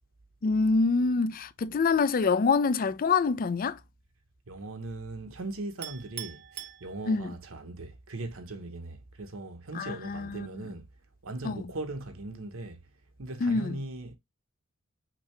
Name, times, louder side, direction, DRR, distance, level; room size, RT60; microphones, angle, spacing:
voice 1, 0.4-3.8 7.1-7.3 9.7-10.5 11.4-11.6 13.4-13.8, left 4 dB, 40° left, 0.4 m, -26 dB
voice 2, 4.5-10.9 11.2-12.8 13.2-14.2, right 2 dB, 70° right, 1.0 m, -39 dB
Chink clink, 5.8-7.5, right 12 dB, 50° right, 0.7 m, -43 dB
5.9 x 2.8 x 3.2 m
head